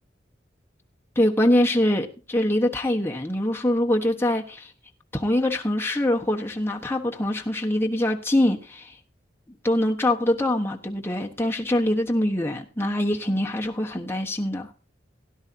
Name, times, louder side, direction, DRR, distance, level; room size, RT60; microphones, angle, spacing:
voice 1, 1.2-4.7 5.1-9.0 9.6-14.7, left 1 dB, 15° left, 1 dB, 1.1 m, -24 dB
17.0 x 10.5 x 2.7 m, 0.33 s
head